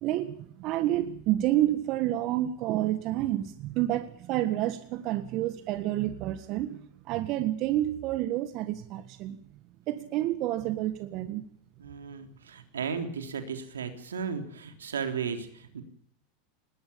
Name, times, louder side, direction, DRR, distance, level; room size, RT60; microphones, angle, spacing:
voice 1, 0.0-6.8 7.0-9.4 9.9-11.4, right 14 dB, 50° right, 10 dB, 1.6 m, -29 dB
voice 2, 11.8-15.8, right 6 dB, 90° right, 6 dB, 3.5 m, -35 dB
20.5 x 19.5 x 7.0 m, 0.66 s
hypercardioid pair, 95°, 0 cm